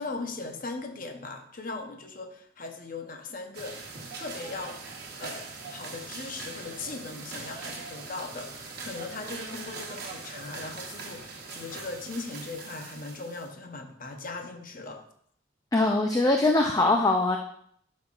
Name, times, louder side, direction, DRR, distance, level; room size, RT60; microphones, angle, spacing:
voice 1, 0.0-3.9 4.2-4.9 5.2-15.0, left 3 dB, 45° left, 4 dB, 0.8 m, -39 dB
sound 1, 3.5-13.5, right 4 dB, 55° right, 1.2 m, -41 dB
voice 2, 15.7-17.4, left 2 dB, 20° left, 3 dB, 0.4 m, -22 dB
11.0 x 6.3 x 2.5 m, 0.67 s
head